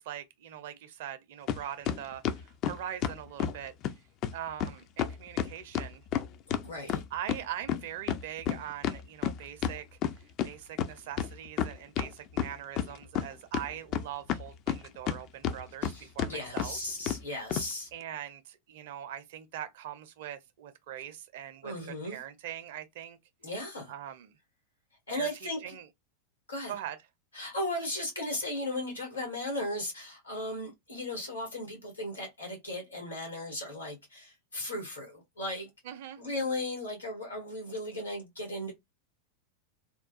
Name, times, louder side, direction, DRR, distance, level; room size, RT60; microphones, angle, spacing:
voice 1, 0.0-3.7 4.3-6.0 7.1-9.8 10.4-16.8 17.9-23.2 23.9-24.3 25.2-25.9 26.7-27.0 35.8-36.2, right 11 dB, 55° right, 0.4 m, -42 dB
sound 1, 1.5-1.6 1.9-3.6 3.8-3.9 4.2-4.3 4.6-4.7 5.0-7.4 7.7-10.5 10.8-10.9 11.2-12.1 12.4-13.3 13.5-15.2 15.4-15.9 16.2-16.3 16.6-16.7 17.1-17.2 17.5-17.7, left 9 dB, 35° left, 0.3 m, -30 dB
voice 2, 6.6-7.0 15.8-17.9 21.6-22.2 23.4-23.9 25.1-25.7 26.5-26.7 27.3-35.7 36.2-38.7, left 1 dB, 80° left, 1.5 m, -36 dB
3.6 x 2.2 x 2.3 m
figure-of-eight pair, 90°, 0 cm